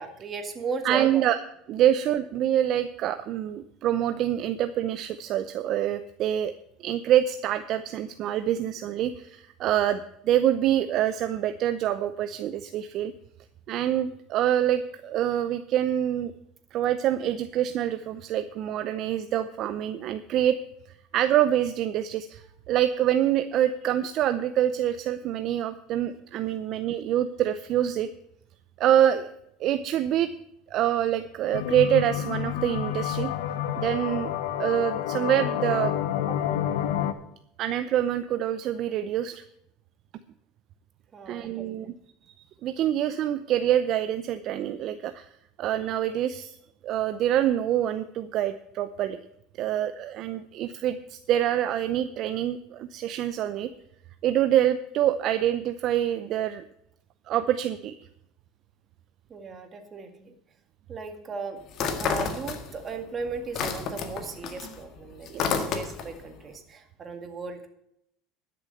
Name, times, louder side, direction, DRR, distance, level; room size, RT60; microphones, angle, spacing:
voice 1, 0.0-1.2 1.8-1.9 41.1-41.9 59.3-60.3 60.9-61.6 61.9-67.7, right 5 dB, 30° right, 6 dB, 2.0 m, -36 dB
voice 2, 0.8-1.4 1.7-6.5 6.8-13.1 13.7-16.3 16.7-20.6 21.1-28.1 28.8-29.3 29.6-30.3 30.7-33.3 33.8-34.3 34.6-35.9 36.3-36.4 37.6-39.4 41.3-41.9 42.6-45.3 45.6-46.6 46.8-49.2 49.6-53.7 54.2-56.6 57.3-57.9 65.3-65.7, right 11 dB, 50° right, 11 dB, 0.6 m, -26 dB
sound 1, 31.5-37.1, left 10 dB, 85° left, 0.9 m, -29 dB
sound 2, 61.7-63.0 63.3-66.2, left 6 dB, 50° left, 1.8 m, -30 dB
12.0 x 6.9 x 7.8 m, 0.76 s
supercardioid pair, 120°, 0 cm